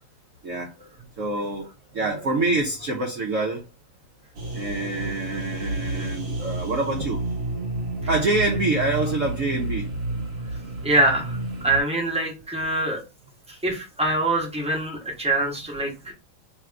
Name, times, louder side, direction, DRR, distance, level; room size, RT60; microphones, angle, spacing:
voice 1, 0.4-0.9 1.2-3.6 4.5-7.2 8.1-9.9, right 2 dB, 80° right, 1 dB, 0.7 m, -26 dB
sound 1, 4.3-11.8, right 2 dB, 55° right, 1.3 m, -30 dB
voice 2, 10.8-13.0 13.6-16.1, right 2 dB, 5° right, -2 dB, 0.5 m, -24 dB
3.2 x 2.4 x 4.4 m, 0.29 s
omnidirectional pair, 2.2 m